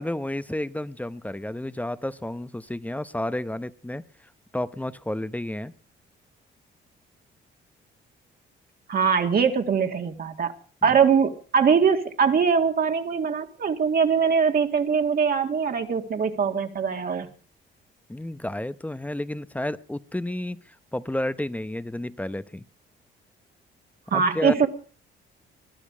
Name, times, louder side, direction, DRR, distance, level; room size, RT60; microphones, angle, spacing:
voice 1, 0.0-4.0 4.5-5.7 10.9-11.0 18.1-22.6 24.1-24.7, left 1 dB, 5° left, 15 dB, 0.8 m, -31 dB
voice 2, 8.9-10.5 10.8-17.3 24.1-24.7, right 6 dB, 50° right, 4 dB, 2.0 m, -22 dB
21.0 x 12.0 x 5.0 m, 0.41 s
cardioid pair, 90°, 20 cm